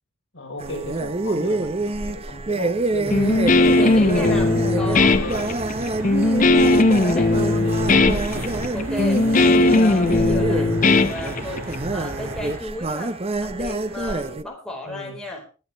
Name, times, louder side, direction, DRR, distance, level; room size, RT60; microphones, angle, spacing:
voice 1, 0.3-6.0 6.6-8.1 9.0-9.4 14.8-15.2, left 2 dB, 60° left, 1 dB, 4.8 m, -36 dB
sound 1, 0.6-14.4, right 2 dB, 25° right, 0.7 m, -27 dB
sound 2, 3.0-12.6, right 1 dB, 70° right, 5.7 m, -34 dB
Guitar, 3.1-11.7, left 2 dB, 35° left, 0.7 m, -18 dB
voice 2, 3.3-5.2 5.8-7.3 8.7-15.4, left 1 dB, 5° left, -1 dB, 4.7 m, -34 dB
20.5 x 9.9 x 3.4 m, 0.33 s
head